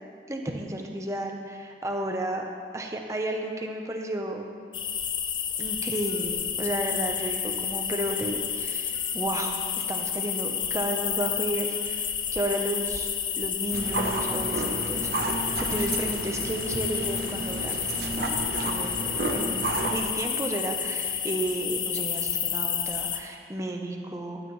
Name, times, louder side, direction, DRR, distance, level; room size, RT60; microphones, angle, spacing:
voice 1, 0.3-2.4 2.7-4.5 5.6-13.1 13.4-15.1 15.6-19.0 19.3-24.4, right 1 dB, 15° right, 2 dB, 0.7 m, -32 dB
sound 1, 4.7-23.2, left 8 dB, 25° left, 0.4 m, -30 dB
sound 2, 13.7-20.0, right 2 dB, 60° right, 0.8 m, -31 dB
12.0 x 9.1 x 3.1 m, 2.2 s
head